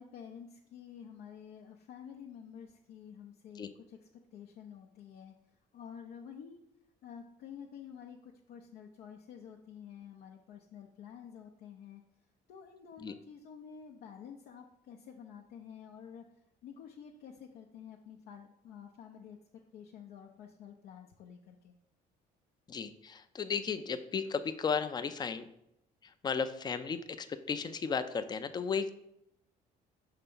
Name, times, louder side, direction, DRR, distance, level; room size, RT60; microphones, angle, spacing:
voice 1, 0.0-4.0 4.3-5.3 5.7-6.6 7.0-12.0 12.5-16.2 16.6-19.4 19.7-21.7, left 8 dB, 70° left, 1 dB, 0.6 m, -50 dB
voice 2, 22.7-25.5 26.0-28.9, left 6 dB, 25° left, 11 dB, 0.4 m, -35 dB
5.8 x 3.3 x 5.4 m, 0.80 s
cardioid pair, 110°, 17 cm